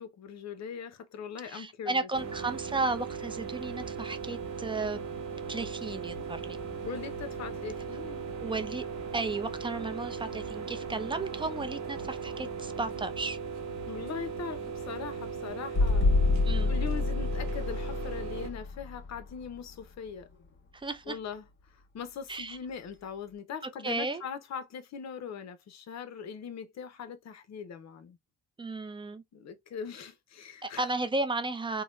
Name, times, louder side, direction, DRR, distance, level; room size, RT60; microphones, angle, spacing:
voice 1, 0.0-2.1 6.9-8.3 13.9-16.1 16.7-20.3 21.1-21.4 21.9-28.2 29.3-30.9, left 7 dB, 60° left, 0.8 m, -41 dB
voice 2, 1.4-5.0 5.5-6.6 8.4-8.8 9.1-13.4 16.4-16.7 20.7-21.2 22.3-22.6 23.6-24.2 28.6-29.2 30.6-31.8, right 3 dB, 15° right, 0.6 m, -34 dB
sound 1, 2.1-18.5, right 6 dB, 65° right, 0.8 m, -38 dB
sound 2, 6.5-7.5 9.2-9.3 15.7-20.4, left 3 dB, 40° left, 1.2 m, -28 dB
2.8 x 2.2 x 3.0 m
cardioid pair, 90°, 30 cm